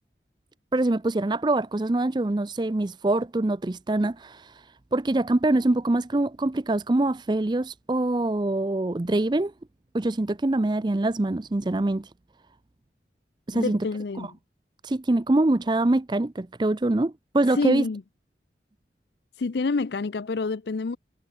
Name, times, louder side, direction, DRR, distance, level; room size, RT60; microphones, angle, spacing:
voice 1, 0.7-9.5 9.9-12.1 13.5-13.9 14.2-14.3 14.8-17.9, right 2 dB, 25° right, 0.5 m, -24 dB
voice 2, 13.5-14.3 17.5-18.0 19.4-21.0, left 4 dB, 70° left, 0.5 m, -28 dB
head